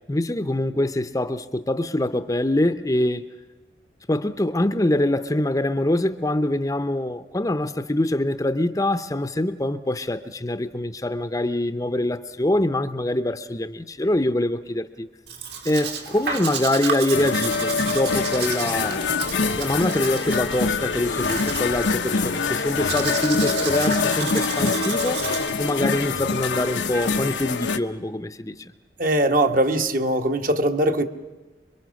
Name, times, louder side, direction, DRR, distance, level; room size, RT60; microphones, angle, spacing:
voice 1, 0.0-3.3 4.1-15.1 15.6-19.1 19.5-25.2 25.6-28.7, left 1 dB, 20° left, 0.7 m, -24 dB
Domestic sounds home sounds, 15.3-25.5, right 6 dB, 75° right, 3.0 m, -33 dB
sound 1, 17.1-27.8, left 4 dB, 90° left, 1.0 m, -25 dB
voice 2, 29.0-31.0, right 1 dB, 50° right, 1.3 m, -21 dB
27.0 x 23.0 x 6.4 m
head